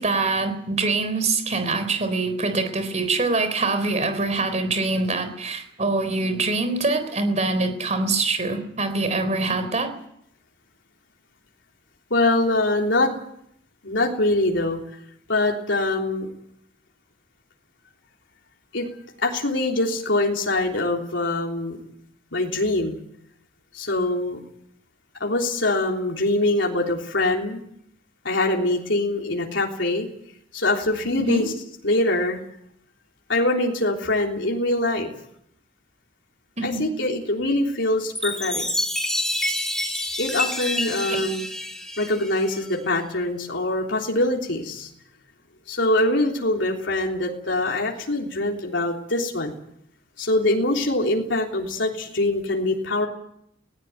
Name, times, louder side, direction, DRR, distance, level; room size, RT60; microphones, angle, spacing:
voice 1, 0.0-10.0 31.3-31.5 36.6-36.8 41.1-41.2, right 3 dB, 40° right, 9 dB, 3.8 m, -24 dB
voice 2, 12.1-13.1 13.8-14.8 15.3-16.3 18.7-18.9 19.2-21.8 22.3-23.0 23.7-24.4 25.2-27.6 28.2-30.1 30.5-31.5 31.8-32.4 33.3-35.1 36.6-38.6 40.2-41.5 42.0-44.9 45.7-49.6 50.2-53.1, left 2 dB, 85° left, 0 dB, 3.5 m, -23 dB
Chime, 38.1-42.8, left 1 dB, 5° left, 3.0 m, -28 dB
20.0 x 17.5 x 9.3 m, 0.73 s
head